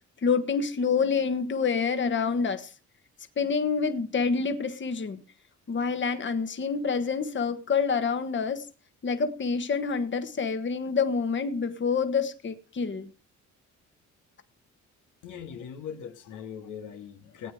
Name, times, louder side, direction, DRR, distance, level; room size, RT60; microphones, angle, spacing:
voice 1, 0.2-2.7 3.4-5.2 5.7-8.7 9.0-13.1, left 5 dB, 40° left, 1.5 m, -27 dB
voice 2, 15.2-17.5, left 8 dB, 90° left, 2.1 m, -40 dB
17.5 x 9.0 x 5.0 m
cardioid pair, 90°, 30 cm